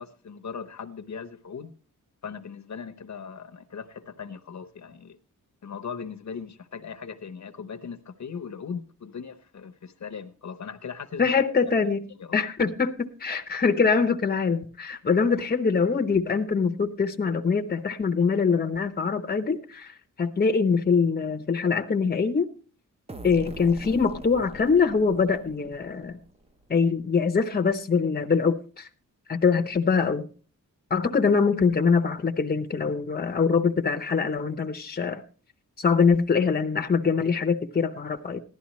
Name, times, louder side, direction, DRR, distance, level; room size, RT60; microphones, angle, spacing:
voice 1, 0.0-1.7 2.2-5.2 5.6-11.3 12.1-12.4 15.3-15.4, left 6 dB, 60° left, 0.8 m, -39 dB
voice 2, 11.2-12.0 12.3-22.5 23.2-26.2 26.7-28.9 29.3-30.3 30.9-35.2 35.8-38.4, left 5 dB, 30° left, 0.8 m, -23 dB
sound 1, 23.1-26.7, right 1 dB, 20° right, 0.7 m, -43 dB
15.0 x 11.5 x 3.1 m
wide cardioid pair, 135°, 33 cm